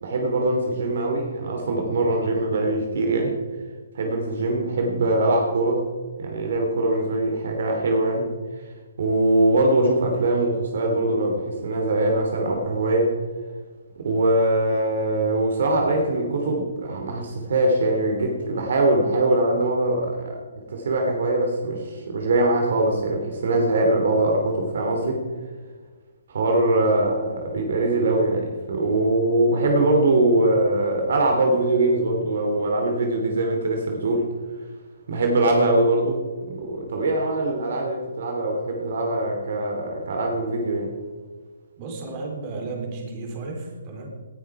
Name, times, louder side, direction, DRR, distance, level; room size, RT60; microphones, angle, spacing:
voice 1, 0.0-3.3 3.9-5.9 6.2-8.3 8.6-13.1 14.0-25.2 26.3-34.3 35.1-40.9, right 2 dB, 65° right, 2 dB, 2.8 m, -22 dB
voice 2, 41.8-44.1, right 3 dB, 35° right, 1 dB, 3.8 m, -33 dB
18.5 x 10.5 x 4.8 m, 1.5 s
hypercardioid pair, 145°, 0 cm